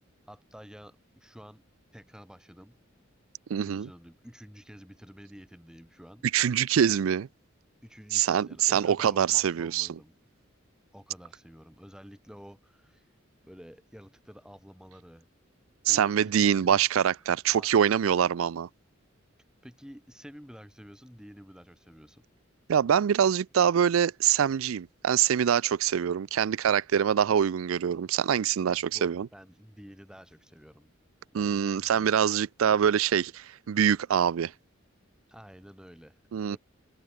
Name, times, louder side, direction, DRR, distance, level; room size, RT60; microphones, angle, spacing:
voice 1, 0.3-1.6 1.9-2.8 3.6-6.3 7.8-10.1 10.9-13.0 13.4-15.3 15.9-16.9 17.5-17.7 19.6-22.2 28.8-30.9 31.3-32.2 35.3-36.2 36.4-36.6, equal, 5° right, 6.4 m, -50 dB
voice 2, 3.5-3.9 6.3-7.3 8.1-9.9 15.8-18.7 22.7-29.3 31.3-34.5 36.3-36.6, right 8 dB, 85° right, 0.4 m, -24 dB
head